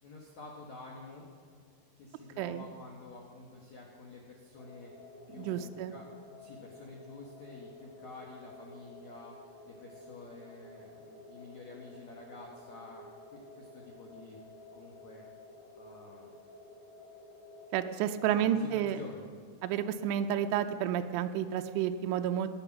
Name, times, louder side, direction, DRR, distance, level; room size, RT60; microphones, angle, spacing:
voice 1, 0.0-1.3 2.0-4.9 5.3-13.0 13.3-14.4 14.7-15.2 15.7-16.4 18.2-18.7 18.9-19.3, left 3 dB, 80° left, -1 dB, 1.6 m, -49 dB
sound 1, 4.6-18.0, left 2 dB, 40° left, 3.6 m, -52 dB
voice 2, 5.4-5.9 17.7-19.0 19.6-22.5, right 10 dB, 85° right, 7 dB, 3.1 m, -30 dB
16.5 x 10.0 x 6.1 m, 2.2 s
omnidirectional pair, 5.6 m